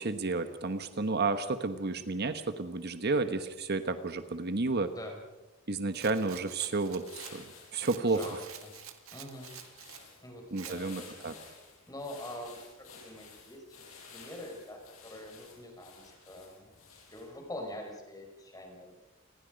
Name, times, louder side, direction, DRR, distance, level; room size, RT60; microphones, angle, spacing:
voice 1, 0.0-4.9 5.7-8.4 10.5-11.3, right 3 dB, 50° right, 10 dB, 1.2 m, -31 dB
voice 2, 4.8-5.2 8.0-8.7 9.1-9.5 10.2-11.3 11.9-13.8 14.1-16.7 17.1-18.9, left 1 dB, 20° left, 2 dB, 5.3 m, -45 dB
Rattle, 5.9-10.1 10.6-10.8, right 10 dB, 80° right, 1.9 m, -49 dB
sound 1, 6.6-17.5, left 5 dB, 85° left, 6.5 m, -54 dB
28.5 x 20.5 x 5.2 m, 1.1 s
head